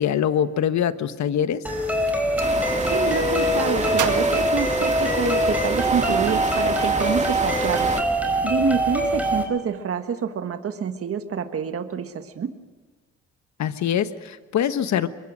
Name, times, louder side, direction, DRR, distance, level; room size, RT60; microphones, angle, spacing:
voice 1, 0.0-1.6 13.6-15.1, left 9 dB, 65° left, 11 dB, 1.3 m, -23 dB
sound 1, 1.6-9.4, equal, 5° right, 4.4 m, -23 dB
Gunshot gunfire, 2.0-2.5 3.9-5.4, right 9 dB, 80° right, 2.1 m, -32 dB
sound 2, 2.4-8.0, right 3 dB, 25° right, 2.0 m, -28 dB
voice 2, 2.9-7.9 8.4-12.5, right 7 dB, 50° right, 7 dB, 1.5 m, -27 dB
23.5 x 22.0 x 6.3 m, 1.4 s
cardioid pair, 90°, 30 cm